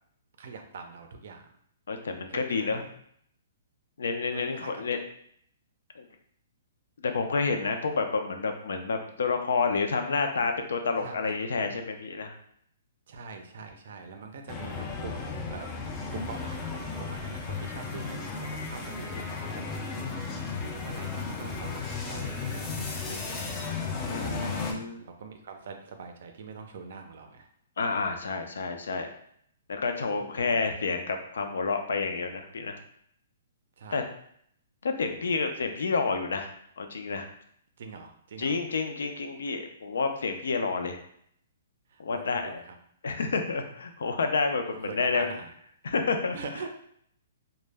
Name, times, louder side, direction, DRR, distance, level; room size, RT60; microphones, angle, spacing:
voice 1, 0.4-1.5 2.3-2.9 4.3-4.7 11.0-11.3 13.1-15.7 16.1-20.2 20.6-23.6 24.3-24.6 25.0-27.5 30.4-30.7 33.8-34.0 37.8-38.6 41.9-42.8 44.6-45.5 46.3-46.7, right 4 dB, 60° right, 5 dB, 0.4 m, -43 dB
voice 2, 1.9-2.8 4.0-5.0 6.0-6.1 7.0-12.4 24.0-25.0 27.8-29.1 29.7-32.8 33.9-34.0 34.8-36.5 36.8-37.3 38.4-41.0 42.0-42.6 43.0-45.3 45.8-46.4, left 4 dB, 85° left, 5 dB, 0.4 m, -29 dB
sound 1, 14.5-24.7, left 4 dB, 20° left, 0.3 m, -35 dB
2.1 x 2.0 x 3.3 m, 0.67 s
hypercardioid pair, 160°, 0 cm